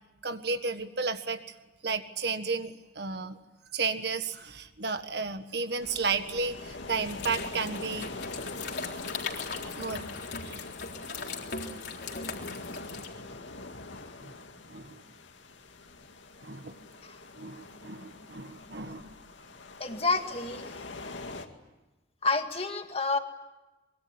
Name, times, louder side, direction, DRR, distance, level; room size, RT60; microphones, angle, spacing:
voice 1, 0.2-1.4 1.8-3.4 3.7-8.1 9.7-10.0 10.4-10.6 14.2-14.4 14.7-15.0 16.4-16.8 17.4-19.1, right 4 dB, 55° right, 9 dB, 1.6 m, -33 dB
sound 1, 5.8-21.5, left 2 dB, 75° left, 2.2 m, -43 dB
sound 2, 7.1-13.1, left 5 dB, 55° left, 3.7 m, -39 dB
voice 2, 19.8-20.7 22.2-23.2, left 3 dB, 30° left, 6 dB, 2.0 m, -29 dB
24.5 x 22.5 x 9.6 m, 1.1 s
head